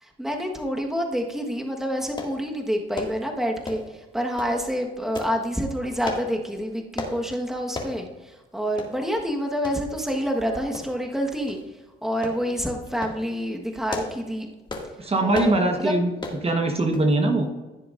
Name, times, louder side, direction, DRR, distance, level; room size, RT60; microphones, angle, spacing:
voice 1, 0.0-11.6 12.0-14.5 15.2-15.9, equal, ahead, 1 dB, 1.4 m, -28 dB
sound 1, 2.2-2.4 2.9-3.2 3.6-3.9 4.4-4.6 5.1-5.4 6.0-6.3 7.0-7.2 7.7-8.0 8.3-8.4 8.8-8.9 9.6-9.8 10.7-11.1 11.5-11.6 12.2-12.4 12.9-13.2 13.7-14.2 14.7-14.9 15.3-15.6 16.2-16.4 16.9-17.1 17.4-17.5, left 2 dB, 25° left, 2.1 m, -34 dB
voice 2, 15.0-16.1 16.4-17.5, right 2 dB, 30° right, 4 dB, 1.2 m, -21 dB
16.0 x 6.9 x 2.6 m, 1.2 s
cardioid pair, 85°, 20 cm